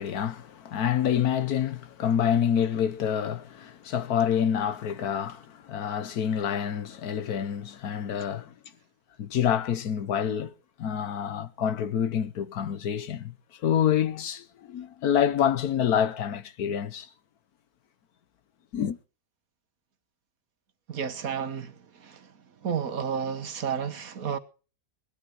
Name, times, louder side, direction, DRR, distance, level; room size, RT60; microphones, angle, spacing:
voice 1, 0.0-8.5 9.2-10.5 10.8-13.3 13.6-17.1 18.7-19.0, left 9 dB, 75° left, 1.4 m, -27 dB
voice 2, 20.9-22.3 22.6-24.4, right 7 dB, 65° right, 1.6 m, -32 dB
19.0 x 12.0 x 4.8 m
omnidirectional pair, 1.7 m